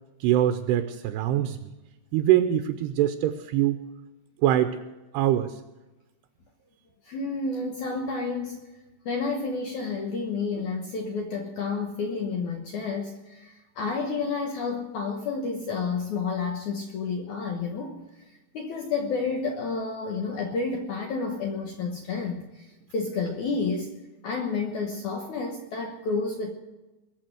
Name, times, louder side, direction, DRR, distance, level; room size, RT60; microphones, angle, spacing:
voice 1, 0.2-1.7 2.1-3.8 4.4-4.8 5.1-5.6, right 12 dB, 80° right, 8 dB, 2.6 m, -23 dB
voice 2, 7.0-8.7 9.0-18.0 18.5-22.7 22.9-23.9 24.2-26.5, left 4 dB, 75° left, 3 dB, 1.7 m, -30 dB
21.5 x 7.1 x 7.8 m, 1.1 s
omnidirectional pair, 5.2 m